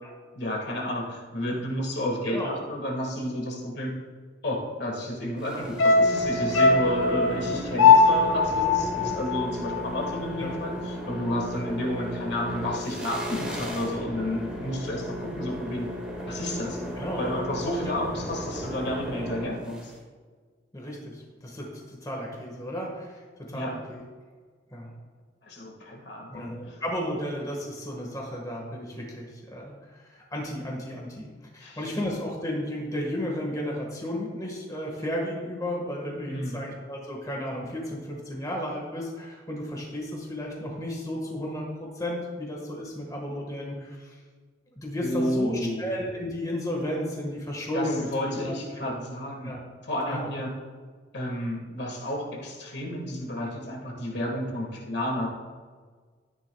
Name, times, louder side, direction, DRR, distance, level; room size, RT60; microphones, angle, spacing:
voice 1, 0.4-3.9 4.4-15.9 16.3-16.8 17.2-19.9 23.5-23.8 25.5-26.8 31.6-31.8 36.3-36.6 45.0-45.8 47.7-49.5 49.8-50.5 51.1-55.3, left 1 dB, 55° left, 0 dB, 1.8 m, -31 dB
sound 1, 5.4-19.9, equal, 5° right, 1.8 m, -35 dB
sound 2, 5.8-10.2 10.5-10.6, left 4 dB, 90° left, 0.9 m, -21 dB
voice 2, 20.7-24.0 24.7-24.9 26.3-31.3 31.5-44.2 44.7-48.9 49.4-49.6 50.1-50.3, left 1 dB, 20° left, -1 dB, 1.5 m, -33 dB
13.0 x 10.0 x 2.3 m, 1.5 s
head